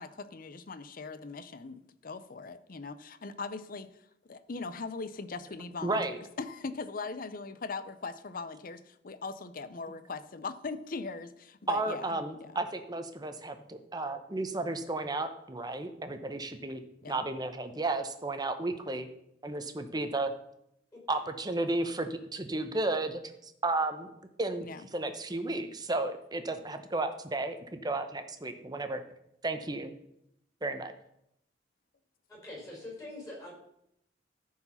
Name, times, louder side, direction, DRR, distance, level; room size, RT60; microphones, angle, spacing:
voice 1, 0.0-12.6 17.0-17.2 24.6-24.8, left 4 dB, 50° left, 13 dB, 0.6 m, -40 dB
voice 2, 5.8-6.2 11.7-16.8 17.1-19.1 19.4-20.3 21.1-24.1 24.4-24.7 24.9-29.0 29.4-30.0 30.6-30.9, right 2 dB, 20° right, 8 dB, 0.8 m, -33 dB
voice 3, 32.3-33.6, left 1 dB, 15° left, -3 dB, 4.9 m, -44 dB
13.5 x 4.7 x 5.7 m, 0.78 s
head